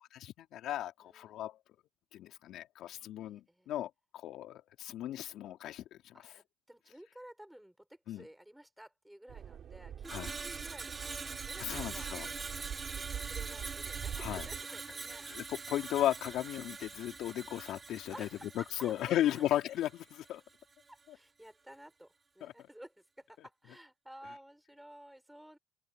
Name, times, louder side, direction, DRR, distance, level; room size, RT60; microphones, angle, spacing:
voice 1, 0.1-1.6 2.1-6.3 8.1-8.3 10.1-10.3 11.6-12.3 14.2-14.5 15.3-18.3 18.6-20.4 21.1-21.2 22.4-22.5, left 12 dB, 70° left, 3.7 m, -36 dB
voice 2, 1.1-1.4 2.8-3.7 6.1-12.4 12.9-15.6 18.1-19.4 20.9-25.6, right 1 dB, 5° right, 7.1 m, -54 dB
sound 1, 9.3-14.6, right 9 dB, 55° right, 6.9 m, -44 dB
Screech, 10.0-20.4 20.7-21.0, right 4 dB, 30° right, 6.1 m, -44 dB
open air
supercardioid pair, 90°, 0 cm